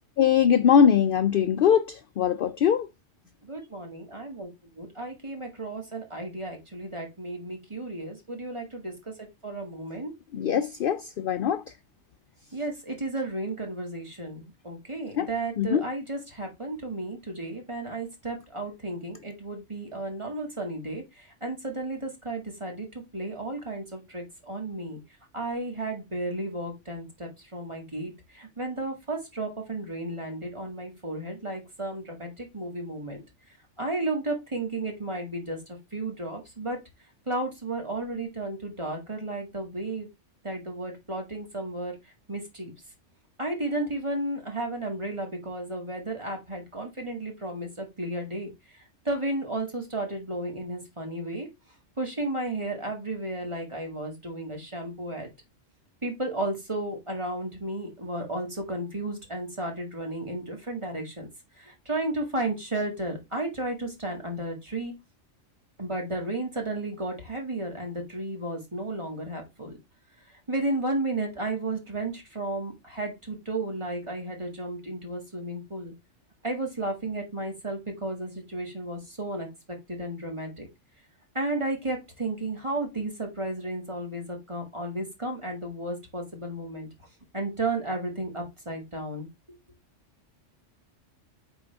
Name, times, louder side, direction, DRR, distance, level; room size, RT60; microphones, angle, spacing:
voice 1, 0.2-2.9 10.3-11.6 15.2-15.3 15.6-15.9, left 8 dB, 60° left, 0.6 m, -22 dB
voice 2, 3.4-4.5 4.8-10.1 12.5-25.0 25.3-33.2 33.8-36.8 37.3-40.1 40.4-42.0 42.3-42.7 43.4-51.5 52.0-55.3 56.0-61.3 61.6-64.9 65.8-69.8 70.5-75.9 76.4-80.7 81.3-86.9 87.3-89.3, right 2 dB, 25° right, 2.0 m, -33 dB
9.0 x 3.8 x 3.4 m
omnidirectional pair, 1.3 m